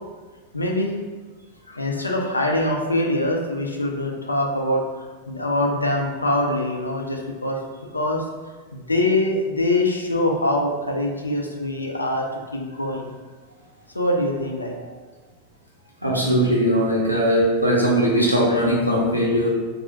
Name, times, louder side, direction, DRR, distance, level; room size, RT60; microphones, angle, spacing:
voice 1, 0.5-0.9 1.7-7.6 7.9-8.2 8.7-13.1 13.9-14.7, left 1 dB, 80° left, 0 dB, 0.4 m, -24 dB
voice 2, 16.0-19.5, equal, 90° right, -4 dB, 0.5 m, -19 dB
3.3 x 2.0 x 2.7 m, 1.4 s
figure-of-eight pair, 90°, 0 cm